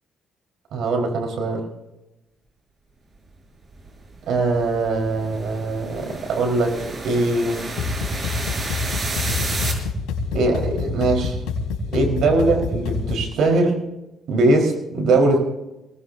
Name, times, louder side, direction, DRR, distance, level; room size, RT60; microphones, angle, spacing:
voice 1, 0.7-1.6 4.3-7.6 10.3-11.4 11.9-13.8 14.3-15.4, right 2 dB, 70° right, 3 dB, 4.4 m, -21 dB
sound 1, 3.7-9.7, right 3 dB, 45° right, 5.9 m, -31 dB
sound 2, 7.8-13.3, left 4 dB, 75° left, 3.5 m, -27 dB
24.0 x 19.0 x 2.7 m, 0.95 s
supercardioid pair, 60°, 0 cm